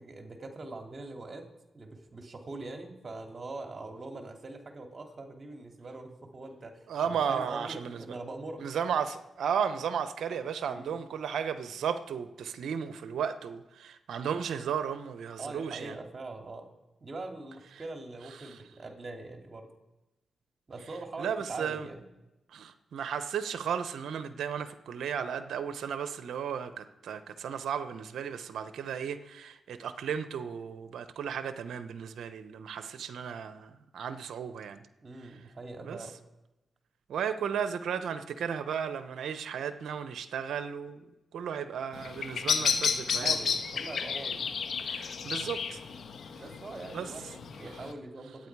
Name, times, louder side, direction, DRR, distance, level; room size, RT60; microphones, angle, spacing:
voice 1, 0.0-1.5 1.7-8.6 10.7-10.9 15.4-16.7 17.0-19.7 20.7-22.0 35.0-36.1 43.1-44.5 46.4-48.5, right 2 dB, 45° right, 3 dB, 2.6 m, -42 dB
voice 2, 6.9-8.0 8.6-16.0 18.4-18.5 21.2-21.9 22.5-34.8 35.8-36.0 37.1-43.4 44.8-45.8 46.9-47.1, right 7 dB, 80° right, 10 dB, 0.9 m, -34 dB
Bird vocalization bird call bird song, 41.9-47.9, left 6 dB, 70° left, 1.3 m, -32 dB
26.0 x 9.0 x 4.7 m, 0.97 s
supercardioid pair, 45°, 0 cm